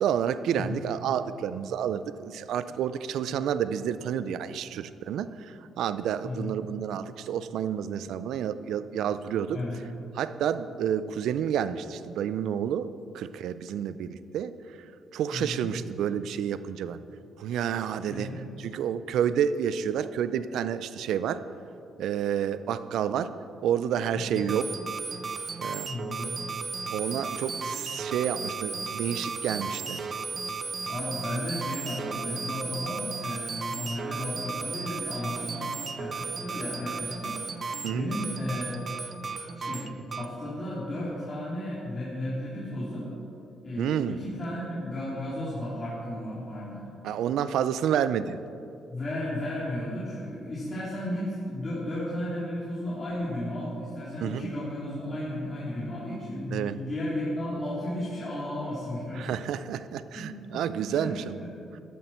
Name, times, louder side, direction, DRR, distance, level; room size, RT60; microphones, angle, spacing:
voice 1, 0.0-9.6 10.2-14.5 15.1-17.0 17.4-18.3 18.6-21.4 22.0-23.3 23.6-24.6 25.6-25.9 26.9-30.0 37.8-38.1 43.8-44.2 47.0-48.4 54.2-54.5 56.5-56.8 59.2-61.4, right 9 dB, 80° right, 14 dB, 0.5 m, -29 dB
voice 2, 6.2-6.5 9.5-9.7 15.3-15.7 18.1-18.4 24.1-24.4 25.9-26.3 30.9-38.8 39.5-43.1 43.6-46.8 48.9-59.3 60.1-61.1 61.4-61.5, left 1 dB, 35° left, -9 dB, 3.7 m, -34 dB
sound 1, 24.4-40.3, right 4 dB, 40° right, 0.8 m, -35 dB
13.5 x 12.0 x 4.5 m, 2.6 s
cardioid pair, 90°, 0 cm